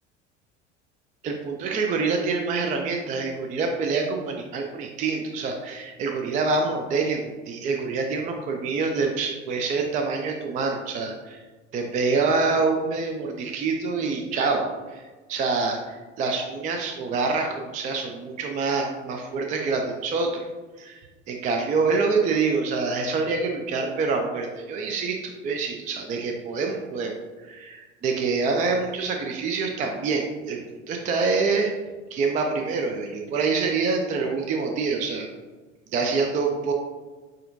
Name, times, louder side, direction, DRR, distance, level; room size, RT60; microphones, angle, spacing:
voice 1, 1.2-11.4 11.7-20.5 20.8-21.0 21.3-27.1 27.4-30.6 30.9-31.7 32.1-35.3 35.9-36.7, right 4 dB, 25° right, 3 dB, 0.4 m, -26 dB
6.5 x 2.5 x 2.5 m, 1.3 s
figure-of-eight pair, 70°, 35 cm